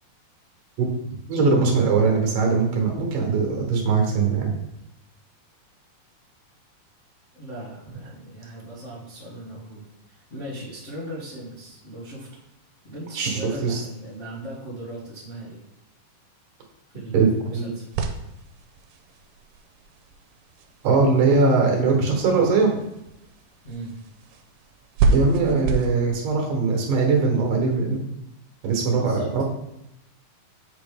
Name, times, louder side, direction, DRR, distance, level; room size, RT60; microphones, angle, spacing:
voice 1, 1.3-4.5 13.2-13.8 17.1-17.7 20.8-22.8 25.1-28.0 28.6-29.4, right 4 dB, 65° right, 1 dB, 2.5 m, -21 dB
voice 2, 7.3-12.3 12.8-15.6 16.9-17.9 23.6-23.9 28.9-29.4, right 1 dB, 70° left, -9 dB, 0.6 m, -38 dB
sound 1, 17.9-25.9, right 3 dB, 90° right, 2.6 m, -29 dB
7.9 x 4.7 x 3.5 m, 0.84 s
omnidirectional pair, 4.4 m